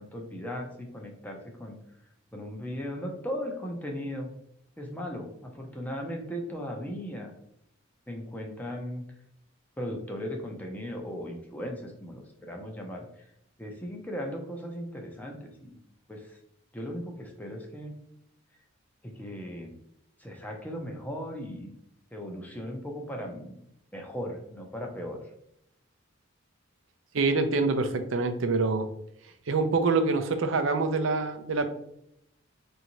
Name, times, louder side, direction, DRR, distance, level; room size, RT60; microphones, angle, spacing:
voice 1, 0.0-1.8 2.3-4.3 4.8-7.3 8.1-9.1 9.8-13.2 13.6-15.8 16.1-16.4 16.7-17.9 19.0-19.7 20.2-21.7 22.1-23.6 23.9-25.3, equal, 10° left, 1 dB, 0.6 m, -37 dB
voice 2, 27.1-28.9 29.5-31.7, right 3 dB, 70° right, 8 dB, 0.5 m, -25 dB
4.6 x 2.6 x 3.0 m, 0.76 s
head